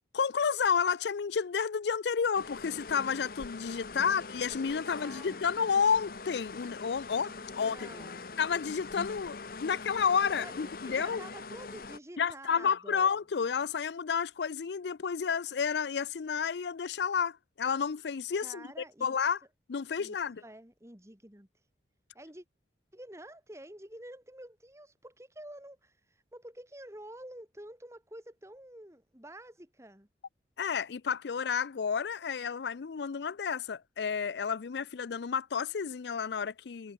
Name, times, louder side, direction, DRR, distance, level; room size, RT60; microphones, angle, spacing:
voice 1, 0.1-7.3 7.6-7.9 8.4-11.2 12.2-19.4 19.7-20.4 30.6-36.9, left 6 dB, 70° left, 0.4 m, -31 dB
sound 1, 2.3-12.0, left 4 dB, 55° left, 0.9 m, -43 dB
voice 2, 4.9-5.4 7.3-8.3 10.3-13.1 18.4-19.2 20.0-20.2 20.4-21.5 22.1-22.4 22.9-30.1, right 1 dB, 15° right, 2.8 m, -49 dB
head